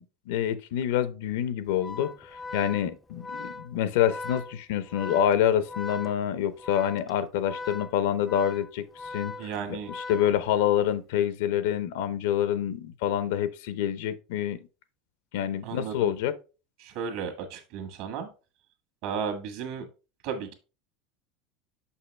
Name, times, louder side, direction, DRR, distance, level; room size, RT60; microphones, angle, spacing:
voice 1, 0.0-8.8 9.1-14.6 15.3-16.3, left 10 dB, 75° left, 0.6 m, -27 dB
Organ, 1.7-10.9, left 3 dB, 10° left, 0.3 m, -40 dB
voice 2, 9.4-9.9 15.6-16.1 16.8-18.3 19.0-19.9 20.2-20.5, right 6 dB, 60° right, 1.6 m, -34 dB
6.1 x 5.5 x 3.2 m
supercardioid pair, 145°, 0 cm